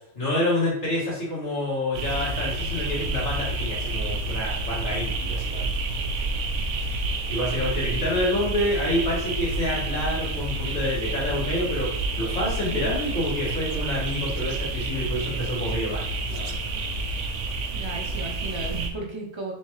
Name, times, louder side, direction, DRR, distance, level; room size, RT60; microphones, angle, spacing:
voice 1, 0.1-5.7 7.3-16.7, left 1 dB, 70° left, -7 dB, 2.3 m, -28 dB
sound 1, 1.9-18.9, right 2 dB, 85° right, 0.9 m, -29 dB
voice 2, 12.7-13.0 17.7-19.5, right 3 dB, 30° right, -1 dB, 0.6 m, -35 dB
4.4 x 3.7 x 3.1 m, 0.73 s
omnidirectional pair, 1.2 m